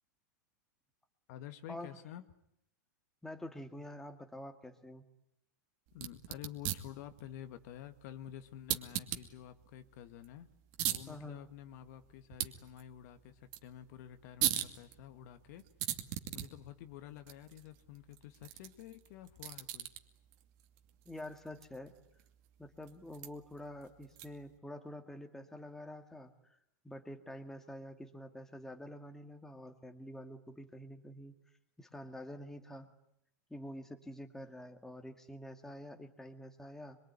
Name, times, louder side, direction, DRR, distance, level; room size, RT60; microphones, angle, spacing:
voice 1, 1.3-2.2 5.9-10.5 10.9-16.0 16.3-19.9, left 11 dB, 60° left, 9 dB, 1.9 m, -50 dB
voice 2, 3.2-5.1 11.1-11.5 21.1-21.9 22.6-26.6 26.8-31.3 31.8-32.9 33.5-37.0, left 1 dB, 5° left, 5 dB, 2.2 m, -47 dB
sound 1, 5.9-24.6, right 13 dB, 50° right, 2.4 m, -42 dB
24.5 x 23.0 x 9.7 m, 0.77 s
supercardioid pair, 135°, 10 cm